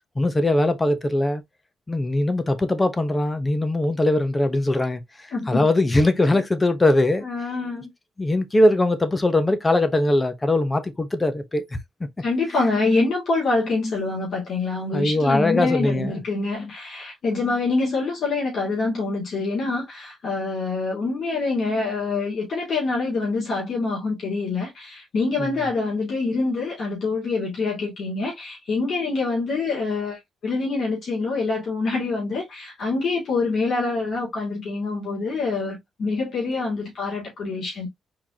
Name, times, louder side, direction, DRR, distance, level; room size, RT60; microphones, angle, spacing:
voice 1, 0.1-1.4 1.9-7.2 8.2-11.7 12.0-12.1 14.9-16.2 25.4-25.6, left 1 dB, 20° left, 0.9 m, -21 dB
voice 2, 5.3-5.7 7.2-7.9 12.2-37.9, left 3 dB, 55° left, 2.5 m, -25 dB
4.6 x 3.7 x 2.8 m
cardioid pair, 90°, 0 cm